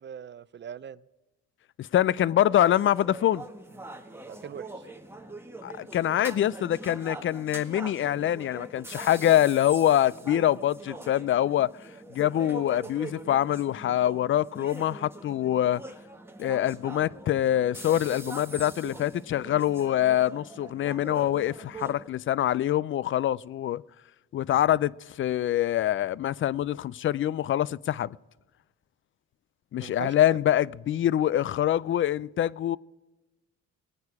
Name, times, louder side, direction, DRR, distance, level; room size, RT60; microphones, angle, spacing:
voice 1, 0.0-1.0 4.3-4.8 29.8-30.4, right 8 dB, 40° right, 0.5 m, -41 dB
voice 2, 1.8-3.4 5.6-11.7 12.1-15.8 16.4-23.8 24.3-28.2 29.7-32.8, left 12 dB, 45° left, 0.4 m, -25 dB
sound 1, 2.4-22.1, right 2 dB, 10° right, 1.6 m, -43 dB
18.5 x 9.5 x 4.8 m
cardioid pair, 90°, 30 cm